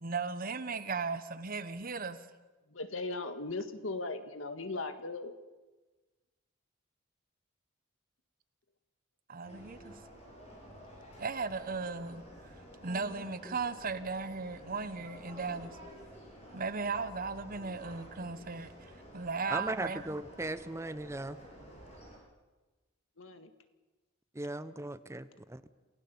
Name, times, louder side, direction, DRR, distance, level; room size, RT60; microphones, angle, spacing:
voice 1, 0.0-2.2 9.3-10.0 11.2-12.5 12.8-15.7 16.5-20.2, right 4 dB, 45° right, 12 dB, 1.2 m, -37 dB
voice 2, 2.7-5.3 23.2-23.5, left 3 dB, 85° left, 8 dB, 1.8 m, -38 dB
sound 1, 9.4-22.2, equal, 35° left, 7.6 m, -52 dB
voice 3, 19.5-21.4 24.4-25.6, right 2 dB, 15° right, 14 dB, 0.7 m, -38 dB
27.5 x 16.5 x 7.0 m, 1.2 s
head